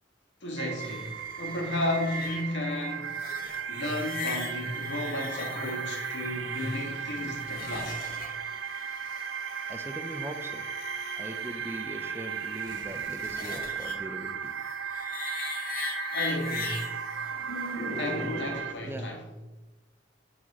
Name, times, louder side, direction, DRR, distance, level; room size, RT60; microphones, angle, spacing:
voice 1, 0.4-3.1 3.7-8.0 16.1-16.8 17.5-19.2, left 1 dB, 75° left, 1.9 m, -33 dB
sound 1, 0.6-18.7, right 7 dB, 90° right, 0.5 m, -36 dB
sound 2, 0.8-18.7, left 5 dB, 50° left, 1.2 m, -41 dB
voice 2, 8.3-9.0 9.7-14.5 18.8-19.1, right 1 dB, 15° right, 0.5 m, -41 dB
7.6 x 4.1 x 6.0 m
head